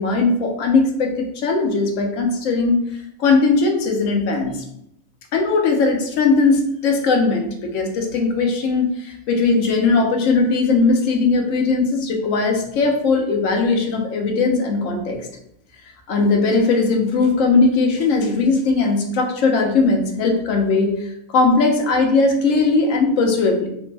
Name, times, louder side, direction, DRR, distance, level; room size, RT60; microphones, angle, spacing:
voice 1, 0.0-2.8 3.2-4.6 5.3-15.3 16.1-23.7, left 3 dB, 70° left, 3 dB, 0.9 m, -19 dB
3.2 x 2.0 x 3.2 m, 0.76 s
omnidirectional pair, 1.5 m